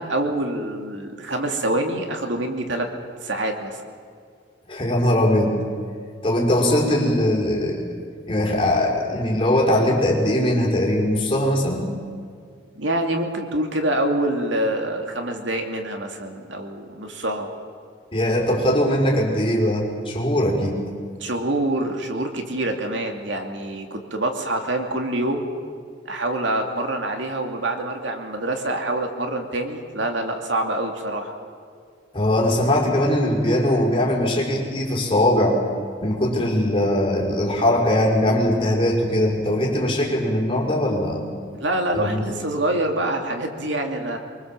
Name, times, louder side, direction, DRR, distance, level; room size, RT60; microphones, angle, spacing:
voice 1, 0.0-2.9 3.2-3.8 12.7-17.5 21.2-25.5 26.1-31.4 41.5-44.2, right 1 dB, 70° right, 3 dB, 2.8 m, -26 dB
voice 2, 4.7-5.6 6.2-7.9 8.3-11.9 18.1-20.8 32.1-35.6 36.0-41.3 41.9-42.2, left 1 dB, 25° left, -1 dB, 5.3 m, -20 dB
25.0 x 24.0 x 7.6 m, 2.2 s
head